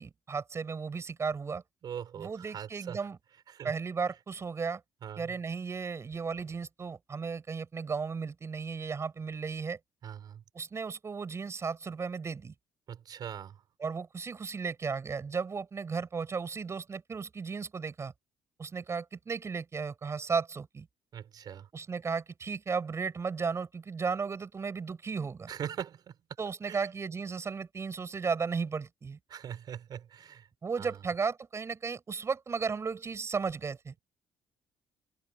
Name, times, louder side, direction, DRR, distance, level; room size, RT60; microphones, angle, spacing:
voice 1, 0.0-1.6 2.2-3.2 3.6-4.8 5.2-9.8 10.5-12.5 13.8-18.1 18.6-20.9 21.7-25.5 26.4-29.2 30.6-33.9, right 5 dB, 35° right, 6.9 m, -35 dB
voice 2, 1.8-3.0 3.5-3.7 5.0-5.3 10.0-10.4 12.9-13.6 21.1-21.7 25.5-26.1 26.7-26.9 29.3-30.5 30.8-31.0, right 9 dB, 60° right, 4.7 m, -41 dB
supercardioid pair, 80°, 8 cm